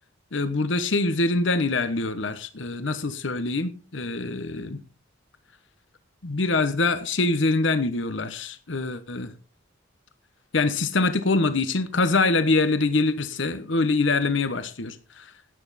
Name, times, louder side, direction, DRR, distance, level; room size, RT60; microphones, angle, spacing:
voice 1, 0.3-4.8 6.2-9.3 10.5-15.3, left 3 dB, 65° left, 1.0 m, -24 dB
12.0 x 9.1 x 4.1 m
head